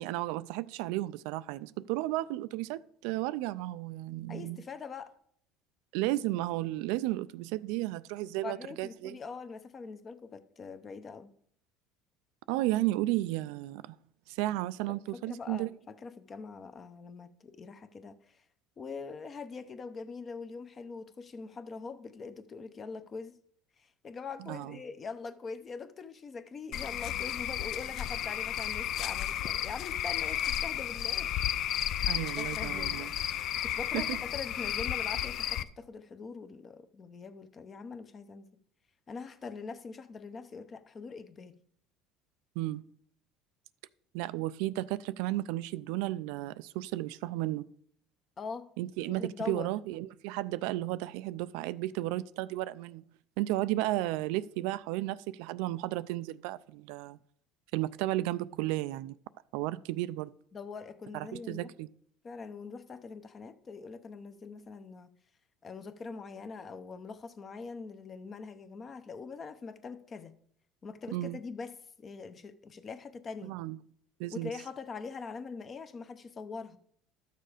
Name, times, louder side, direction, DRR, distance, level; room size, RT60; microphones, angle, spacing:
voice 1, 0.0-4.6 5.9-9.2 12.5-14.0 14.3-15.7 24.4-24.8 32.1-33.1 33.9-34.2 42.6-42.8 44.1-47.6 48.8-53.0 53.4-57.2 57.7-59.2 59.5-60.3 61.1-61.9 71.1-71.4 73.4-73.8 74.2-74.5, right 16 dB, 80° right, 0.3 m, -33 dB
voice 2, 4.3-5.1 8.4-11.3 14.9-18.4 18.8-23.4 23.8-31.3 32.4-38.5 39.1-41.5 48.4-48.7 49.1-49.7 60.5-61.7 62.2-65.1 65.6-70.4 70.8-73.5 74.3-76.8, left 4 dB, 30° left, 0.8 m, -43 dB
Cricket / Frog, 26.7-35.6, left 11 dB, 50° left, 0.4 m, -33 dB
12.0 x 6.7 x 5.0 m
cardioid pair, 125°, 0 cm